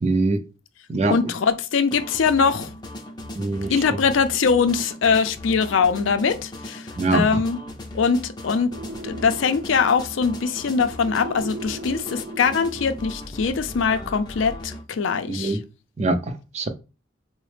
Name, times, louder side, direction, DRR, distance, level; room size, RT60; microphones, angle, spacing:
voice 1, 0.0-0.4 0.9-1.2 3.3-3.8 7.0-7.4 15.3-15.6 16.0-16.7, right 2 dB, 35° right, 0.4 m, -23 dB
voice 2, 1.1-2.7 3.7-7.6 7.9-8.7 9.0-15.6, left 5 dB, 85° left, 0.4 m, -22 dB
sound 1, 1.9-14.8, left 1 dB, 20° left, 0.5 m, -38 dB
sound 2, 8.7-13.3, right 1 dB, 70° right, 0.7 m, -39 dB
3.9 x 2.0 x 3.2 m
head